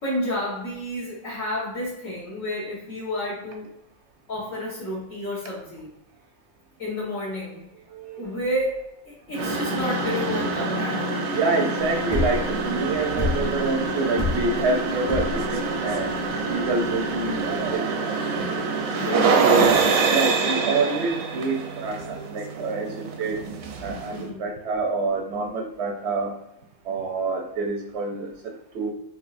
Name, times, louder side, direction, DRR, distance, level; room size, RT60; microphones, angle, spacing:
voice 1, 0.0-3.7 4.3-5.9 6.8-7.7 8.2-11.3 13.8-14.1 18.9-19.5 24.1-24.4, left 1 dB, 70° left, -9 dB, 1.7 m, -30 dB
voice 2, 7.9-8.3 11.3-18.1 18.4-19.7 20.1-23.4 23.8-26.3 26.8-28.9, right 3 dB, 65° right, 3 dB, 0.7 m, -27 dB
sound 1, 9.3-24.3, right 4 dB, 85° right, 1.0 m, -26 dB
sound 2, 11.8-17.7, left 2 dB, 40° left, 0.7 m, -29 dB
4.4 x 2.9 x 2.5 m, 0.85 s
omnidirectional pair, 1.4 m